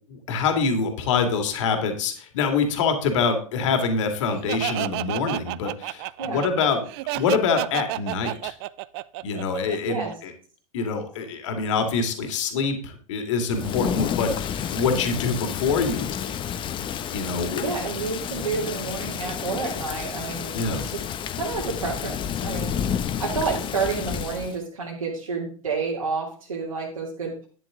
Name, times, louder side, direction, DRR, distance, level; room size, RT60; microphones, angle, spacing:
voice 1, 0.1-6.8 7.1-8.5 9.2-10.3 10.7-16.3 17.1-17.7 20.5-20.8, left 5 dB, 60° left, 6 dB, 2.4 m, -25 dB
Laughter, 4.5-10.1, right 18 dB, 45° right, 0.5 m, -31 dB
Thunder / Rain, 13.5-24.6, left 9 dB, 25° left, 0.9 m, -30 dB
voice 2, 13.6-14.0 17.6-21.0 21.3-22.8 23.2-27.5, right 4 dB, 80° right, -5 dB, 2.8 m, -30 dB
11.5 x 9.9 x 3.7 m, 0.41 s
figure-of-eight pair, 90°, 18 cm